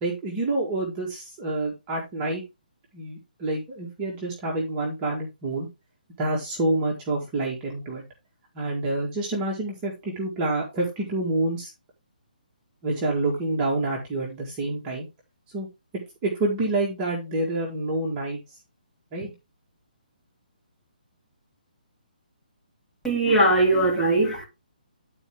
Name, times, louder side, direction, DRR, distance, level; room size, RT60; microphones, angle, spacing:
voice 1, 0.0-2.4 2.9-5.7 6.2-8.0 8.6-11.7 12.8-15.1 15.5-15.7 16.2-18.4 19.1-19.3, right 2 dB, 25° right, 1.8 m, -27 dB
voice 2, 23.0-24.4, right 2 dB, 5° left, 3.1 m, -20 dB
10.5 x 4.4 x 3.6 m
figure-of-eight pair, 140°, 5 cm